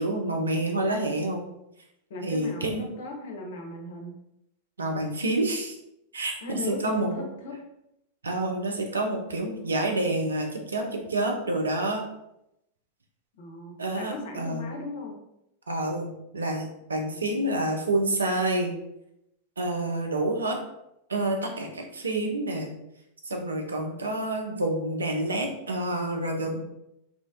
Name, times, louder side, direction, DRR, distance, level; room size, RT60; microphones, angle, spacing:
voice 1, 0.0-1.4 2.2-2.8 4.8-5.8 6.1-6.4 6.8-7.1 8.2-12.0 13.8-14.7 15.7-18.7 19.6-20.6 21.1-22.7 23.2-26.6, right 2 dB, 75° right, 2 dB, 0.4 m, -28 dB
voice 2, 2.1-4.1 6.4-7.6 13.4-15.2 17.0-17.3, left 2 dB, 60° left, 2 dB, 0.5 m, -37 dB
2.4 x 2.1 x 2.5 m, 0.84 s
figure-of-eight pair, 90°, 0 cm